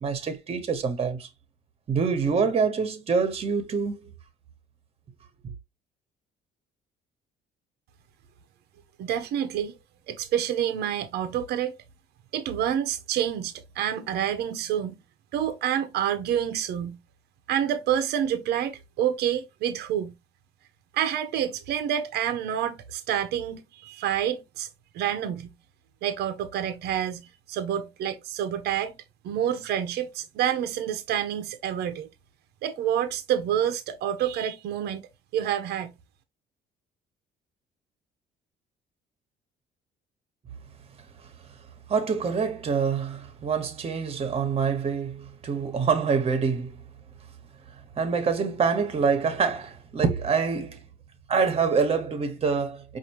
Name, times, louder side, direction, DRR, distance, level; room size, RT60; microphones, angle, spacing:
voice 1, 0.0-1.3 1.9-4.1 41.2-41.6 41.9-46.8 47.7-50.8 51.3-53.0, right 5 dB, 35° right, 1.1 m, -26 dB
voice 2, 9.0-9.8 10.1-11.8 12.3-15.0 15.3-17.0 17.5-20.1 20.9-24.7 24.9-25.5 26.0-28.9 29.2-32.1 32.6-35.0 35.3-35.9, right 10 dB, 75° right, 0.7 m, -28 dB
5.1 x 2.6 x 3.0 m
cardioid pair, 110°, 17 cm